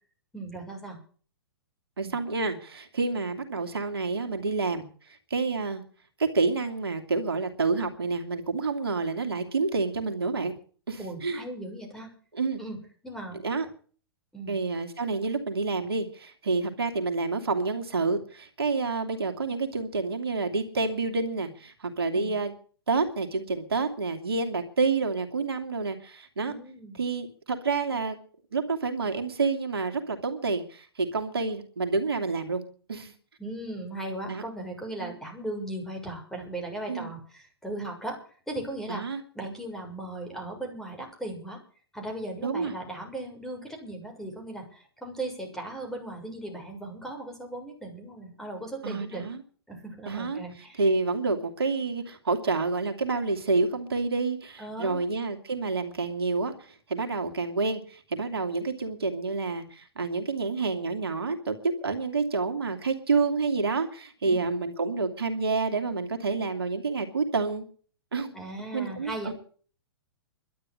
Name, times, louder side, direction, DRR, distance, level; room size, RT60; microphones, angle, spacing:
voice 1, 0.3-1.0 2.0-2.2 11.0-12.1 12.6-12.8 13.0-13.4 14.3-14.5 22.1-22.3 26.5-27.0 33.4-38.2 38.5-39.0 39.3-41.6 41.9-49.3 49.7-50.8 54.6-55.0 64.3-64.5 68.3-69.3, right 1 dB, 5° left, 3 dB, 6.9 m, -37 dB
voice 2, 2.0-5.8 6.2-10.5 10.9-11.4 12.3-12.6 13.4-13.7 14.5-22.5 22.9-26.5 26.9-28.2 28.5-32.6 32.9-33.1 34.3-34.4 35.0-35.1 36.9-37.1 38.9-39.2 42.4-42.7 48.8-49.4 50.1-50.4 50.8-67.6 68.1-68.3 68.7-69.3, right 4 dB, 75° right, 5 dB, 2.8 m, -28 dB
12.0 x 10.0 x 9.8 m, 0.42 s
hypercardioid pair, 115°, 13 cm